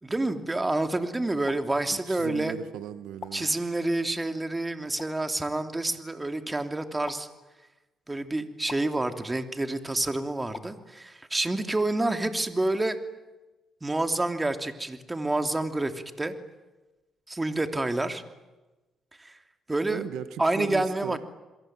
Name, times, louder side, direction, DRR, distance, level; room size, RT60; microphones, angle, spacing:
voice 1, 0.0-2.5 3.3-7.3 8.1-13.0 13.8-16.3 17.3-18.2 19.2-19.4 19.7-20.0 20.4-21.2, right 2 dB, 15° right, 7 dB, 3.0 m, -28 dB
sound 1, 1.4-1.6 3.2-3.3 5.0-5.1 7.0-7.2 8.7-8.8 10.5-10.7, left 6 dB, 50° left, 2.6 m, -41 dB
voice 2, 1.9-3.7 19.9-21.2, right 10 dB, 90° right, 12 dB, 1.5 m, -37 dB
28.0 x 22.5 x 9.1 m, 1.1 s
cardioid pair, 90°, 0 cm